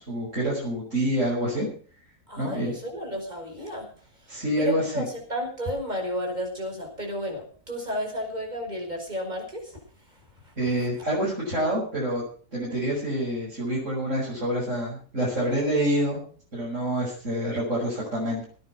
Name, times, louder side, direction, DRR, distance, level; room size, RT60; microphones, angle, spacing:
voice 1, 0.0-1.7 2.4-2.7 4.3-5.0 10.6-12.2 12.5-18.4, right 1 dB, 50° right, -7 dB, 6.9 m, -27 dB
voice 2, 2.3-9.8 10.1-10.9, equal, 30° right, 1 dB, 5.6 m, -33 dB
19.0 x 9.6 x 6.1 m, 0.43 s
omnidirectional pair, 1.6 m